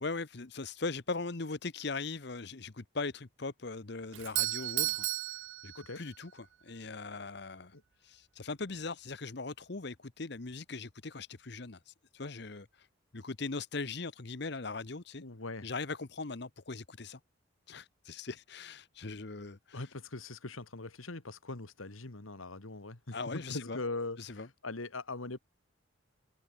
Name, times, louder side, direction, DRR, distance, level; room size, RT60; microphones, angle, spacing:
voice 1, 0.0-5.1 5.6-7.8 8.0-12.9 13.1-15.2 15.6-17.2 17.7-19.9 23.1-23.8 24.2-24.5, left 3 dB, 55° left, 1.0 m, -40 dB
Doorbell, 4.1-6.3, right 19 dB, 70° right, 0.4 m, -34 dB
voice 2, 15.2-15.7 19.7-25.4, left 2 dB, 90° left, 1.9 m, -41 dB
head